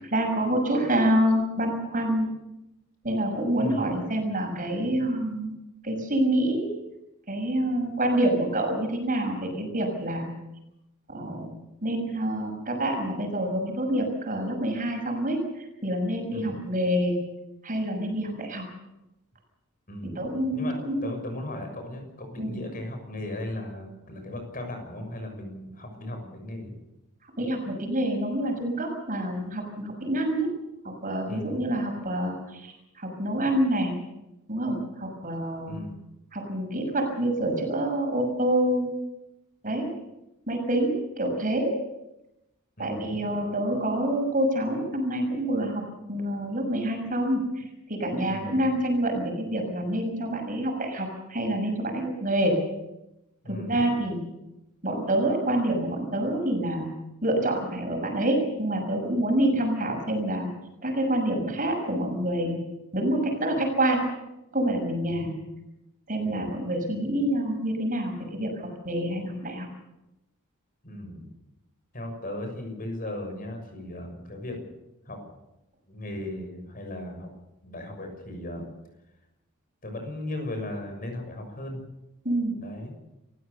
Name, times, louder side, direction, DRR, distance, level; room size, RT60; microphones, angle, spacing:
voice 1, 0.1-2.3 3.0-5.5 5.8-6.7 7.3-10.3 11.1-11.5 11.8-17.2 17.6-18.7 20.2-21.1 22.4-22.6 27.4-30.5 30.8-33.9 34.5-35.8 36.3-38.9 39.6-39.9 40.5-41.7 42.8-45.8 46.1-47.6 47.9-52.6 53.4-54.2 54.8-56.9 57.2-60.5 60.8-62.6 62.9-64.1 64.5-65.3 66.1-69.7 82.2-82.5, right 1 dB, 40° right, 3 dB, 6.3 m, -27 dB
voice 2, 3.5-3.9 16.3-16.5 19.9-20.2 20.5-26.8 27.4-27.5 31.3-31.6 35.6-36.0 42.8-43.2 48.3-48.6 53.4-53.8 65.0-65.3 66.2-66.5 70.8-71.3 71.9-74.6 75.0-75.2 75.9-77.3 77.6-78.7 79.8-81.8 82.6-82.9, left 1 dB, 40° left, 4 dB, 6.7 m, -37 dB
28.0 x 15.5 x 6.9 m, 0.92 s
head